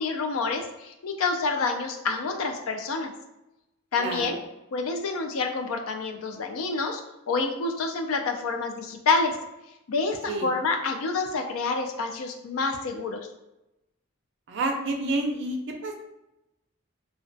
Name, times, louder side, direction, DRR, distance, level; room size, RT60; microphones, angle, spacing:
voice 1, 0.0-3.1 3.9-4.3 4.7-7.0 7.3-9.4 9.9-13.3, left 4 dB, 75° left, 5 dB, 0.4 m, -28 dB
voice 2, 4.0-4.4 10.3-10.5 14.5-15.6 15.8-16.0, right 2 dB, 55° right, 3 dB, 0.4 m, -28 dB
2.2 x 2.1 x 2.6 m, 0.93 s
head